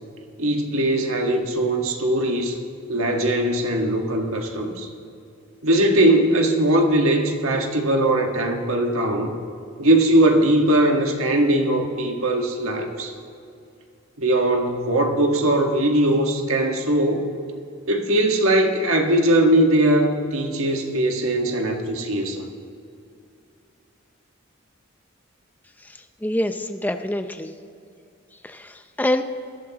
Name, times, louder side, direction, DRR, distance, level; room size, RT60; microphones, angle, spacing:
voice 1, 0.4-2.6 2.9-4.9 5.6-9.4 9.8-13.1 14.2-17.2 17.9-22.5, right 1 dB, 85° right, 3 dB, 1.5 m, -20 dB
voice 2, 26.2-27.5 28.4-29.2, left 1 dB, 10° left, 8 dB, 0.5 m, -25 dB
20.5 x 12.0 x 2.9 m, 2.5 s
head